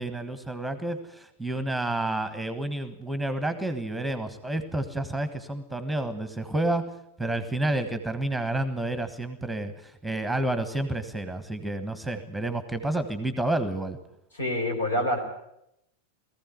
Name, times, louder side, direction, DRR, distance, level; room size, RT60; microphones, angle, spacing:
voice 1, 0.0-6.9 7.2-14.0, right 1 dB, ahead, 11 dB, 1.4 m, -30 dB
voice 2, 14.3-15.2, left 1 dB, 70° left, 4 dB, 4.5 m, -26 dB
19.5 x 15.0 x 9.5 m, 0.81 s
figure-of-eight pair, 90°, 0 cm